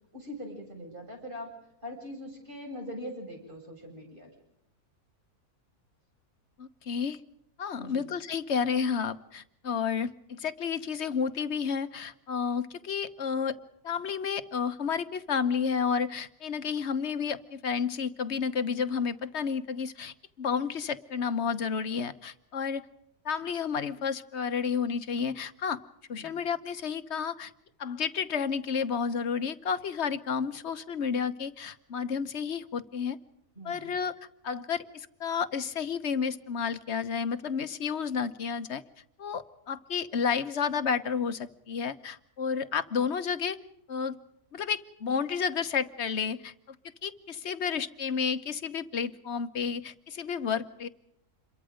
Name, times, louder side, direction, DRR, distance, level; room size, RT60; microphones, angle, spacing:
voice 1, 0.1-1.5 1.8-4.3 7.7-8.1 26.1-26.4 33.6-33.9, equal, 35° right, 1 dB, 7.5 m, -42 dB
voice 2, 6.6-7.2 7.6-13.6 13.8-22.8 23.2-25.8 26.1-27.5 27.8-33.2 33.6-34.1 34.4-38.8 39.2-43.6 43.9-44.2 44.5-46.8 47.0-50.9, left 6 dB, 50° left, 11 dB, 1.2 m, -31 dB
27.5 x 23.0 x 5.1 m, 0.77 s
omnidirectional pair, 1.6 m